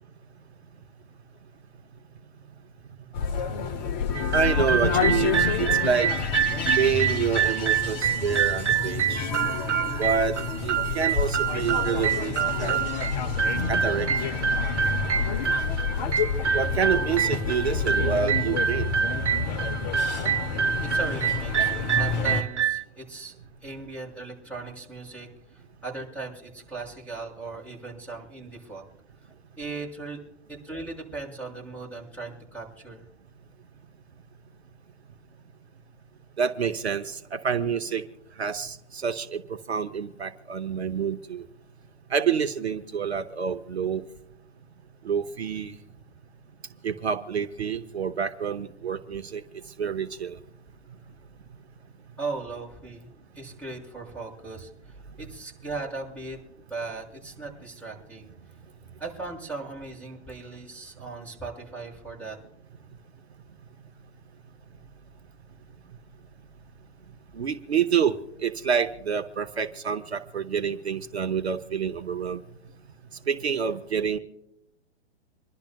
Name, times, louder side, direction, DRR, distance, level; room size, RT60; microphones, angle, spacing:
sound 1, 3.1-22.4, left 5 dB, 40° left, 0.9 m, -29 dB
sound 2, 4.1-22.8, right 8 dB, 85° right, 0.5 m, -27 dB
voice 1, 4.3-6.1 6.7-9.3 10.0-10.4 10.6-12.8 13.7-14.1 16.5-18.9 36.4-38.0 38.4-41.5 42.1-44.0 45.0-45.8 46.8-49.4 49.8-50.4 67.3-72.4 73.3-74.2, right 7 dB, 65° right, 9 dB, 0.9 m, -28 dB
voice 2, 20.8-23.3 23.6-28.8 29.6-30.2 30.5-33.0 52.2-54.7 55.2-56.4 56.7-58.3 59.0-62.4, right 3 dB, 5° left, -2 dB, 6.3 m, -38 dB
27.0 x 11.5 x 2.4 m, 0.87 s
figure-of-eight pair, 110°, 34 cm